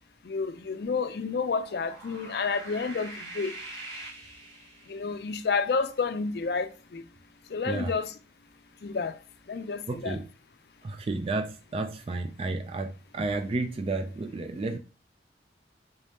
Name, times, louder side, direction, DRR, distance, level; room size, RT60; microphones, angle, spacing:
voice 1, 0.2-3.5 4.9-7.0 7.5-8.1 8.8-9.1 9.5-10.2, left 4 dB, 60° left, 0.4 m, -30 dB
sound 1, 1.4-5.2, right 2 dB, 80° right, 1.8 m, -44 dB
voice 2, 9.9-10.3 10.8-14.8, right 3 dB, 30° right, 0.3 m, -32 dB
3.6 x 2.7 x 3.4 m
head